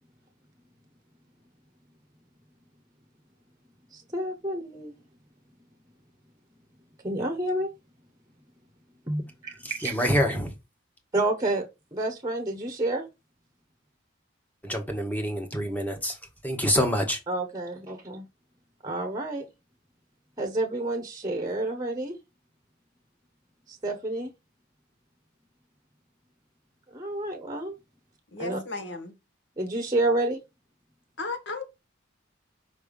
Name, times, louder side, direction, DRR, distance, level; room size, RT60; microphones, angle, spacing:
voice 1, 3.9-4.9 7.0-7.7 9.1-10.0 11.1-13.1 17.3-18.2 18.8-19.5 20.4-22.2 23.7-24.3 26.9-27.7 28.4-28.6 29.6-30.4, right 2 dB, 20° right, 0.9 m, -29 dB
voice 2, 9.6-10.5 14.6-16.2 16.4-17.2, equal, 10° left, 1.3 m, -26 dB
voice 3, 28.3-29.1 31.2-31.6, left 3 dB, 60° left, 1.3 m, -34 dB
5.4 x 3.4 x 5.1 m
head